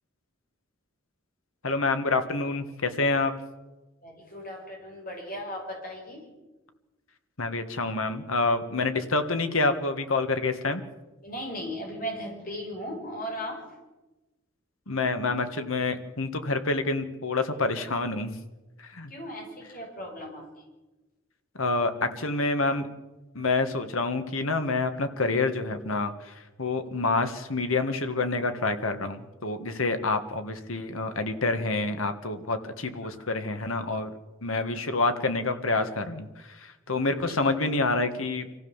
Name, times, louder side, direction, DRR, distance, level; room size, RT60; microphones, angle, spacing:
voice 1, 1.6-3.3 7.4-10.8 14.9-18.4 18.9-19.1 21.6-22.9 23.4-26.1 26.6-34.1 34.4-36.3 36.6-38.5, left 3 dB, 85° left, 8 dB, 1.8 m, -27 dB
voice 2, 4.0-6.3 11.2-13.6 19.1-20.5 33.0-33.3 37.3-37.4, equal, 40° left, 0 dB, 6.0 m, -37 dB
26.0 x 15.0 x 7.3 m, 1.1 s
head